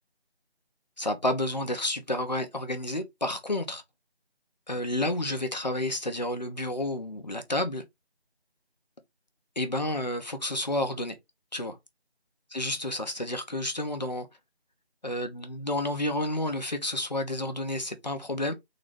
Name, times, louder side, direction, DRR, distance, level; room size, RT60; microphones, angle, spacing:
voice 1, 1.0-3.8 4.7-7.8 9.6-11.1 11.5-11.8 12.5-14.3 15.0-18.5, left 1 dB, 40° left, 0.7 m, -30 dB
3.9 x 2.7 x 3.2 m
figure-of-eight pair, 175°, 32 cm